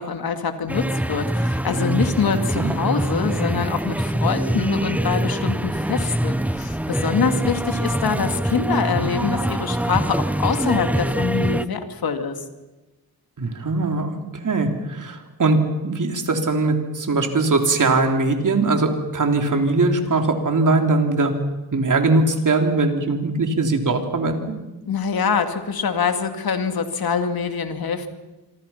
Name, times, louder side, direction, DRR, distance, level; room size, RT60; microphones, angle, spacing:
voice 1, 0.0-12.3 24.9-28.1, left 6 dB, 65° left, 7 dB, 2.6 m, -25 dB
sound 1, 0.7-11.7, right 1 dB, 5° right, 0.9 m, -24 dB
voice 2, 13.4-14.1 14.4-21.3 21.7-24.4, right 3 dB, 50° right, 4 dB, 3.7 m, -20 dB
26.5 x 25.5 x 5.9 m, 1.1 s
cardioid pair, 80°, 39 cm